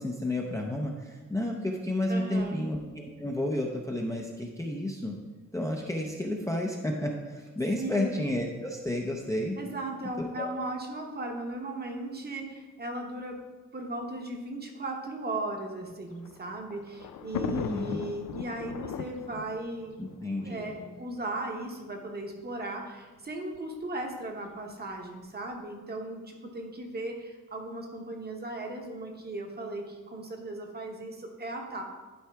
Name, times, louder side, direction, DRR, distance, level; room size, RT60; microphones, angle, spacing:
voice 1, 0.0-5.1 5.5-9.6 10.2-10.5 17.5-18.0 20.0-20.7, left 1 dB, 10° left, 0 dB, 0.5 m, -31 dB
voice 2, 2.1-2.6 7.8-8.1 9.6-13.4 13.7-20.0 20.4-31.8, right 2 dB, 30° right, 2 dB, 0.9 m, -37 dB
Thunder, 15.9-21.2 22.0-22.1 22.4-22.5 23.5-23.8, left 7 dB, 85° left, 0.5 m, -38 dB
11.5 x 4.6 x 3.4 m, 1.3 s
wide cardioid pair, 175°, 32 cm